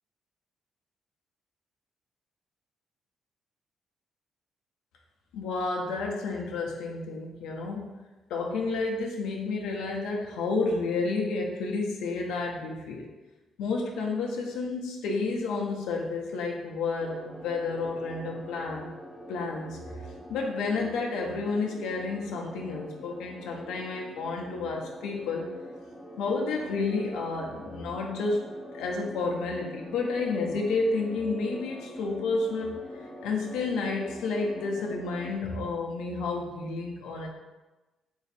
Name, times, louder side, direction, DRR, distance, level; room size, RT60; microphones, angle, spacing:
voice 1, 5.3-8.0 8.3-13.1 13.6-18.9 19.3-19.8 20.3-25.5 26.2-28.5 28.7-32.8 33.2-37.3, left 3 dB, 90° left, 0 dB, 0.6 m, -30 dB
sound 1, 17.0-35.4, equal, 5° left, 0.6 m, -45 dB
3.1 x 2.6 x 4.1 m, 1.1 s
cardioid pair, 90°, 0 cm